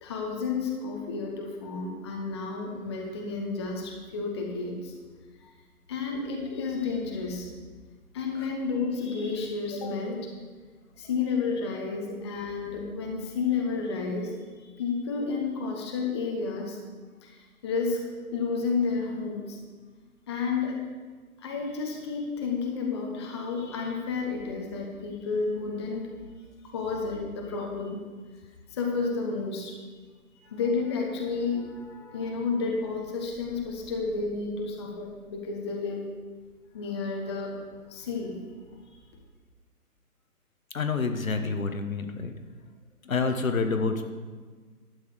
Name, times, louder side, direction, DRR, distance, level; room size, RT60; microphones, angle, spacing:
voice 1, 0.0-4.9 5.4-5.5 5.9-7.5 8.1-10.3 11.0-14.3 14.7-16.8 17.2-19.6 20.3-20.8 21.4-26.1 26.6-28.0 28.7-29.8 30.4-36.0 36.7-37.5 37.9-38.3, left 4 dB, 15° left, 0 dB, 0.9 m, -31 dB
voice 2, 40.7-42.3 43.1-44.1, left 4 dB, 60° left, 7 dB, 1.2 m, -28 dB
12.0 x 8.1 x 4.9 m, 1.5 s
figure-of-eight pair, 140°, 46 cm